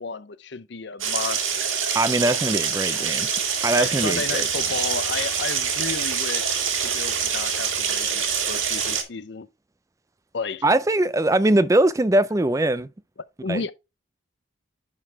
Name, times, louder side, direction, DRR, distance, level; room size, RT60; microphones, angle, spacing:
voice 1, 0.0-1.8 3.7-9.5 10.3-10.6 13.4-13.7, left 4 dB, 60° left, 0.6 m, -32 dB
sound 1, 1.0-9.0, right 7 dB, 85° right, 1.8 m, -25 dB
voice 2, 1.9-3.3 3.6-4.5 10.6-12.9 13.5-13.6, right 1 dB, 15° right, 0.4 m, -21 dB
11.0 x 3.9 x 3.4 m
head